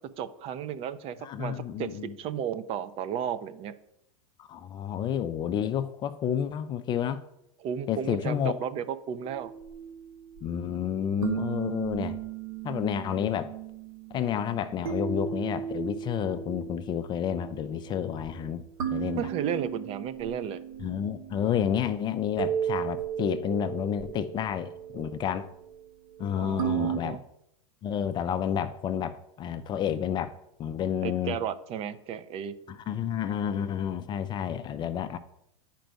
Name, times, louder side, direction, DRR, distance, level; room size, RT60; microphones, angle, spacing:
voice 1, 0.2-3.7 7.6-9.5 19.2-20.6 26.4-27.2 31.0-32.5, right 8 dB, 35° right, 0.5 m, -34 dB
voice 2, 1.2-2.1 4.4-7.2 7.9-8.5 10.4-12.2 12.6-13.5 14.1-18.6 18.9-19.3 20.8-25.5 26.2-27.2 27.8-30.3 30.6-31.4 32.7-35.2, left 9 dB, 25° left, 0.4 m, -30 dB
sound 1, 9.2-27.0, right 10 dB, 80° right, 1.1 m, -36 dB
9.2 x 4.5 x 5.1 m
supercardioid pair, 130°, 17 cm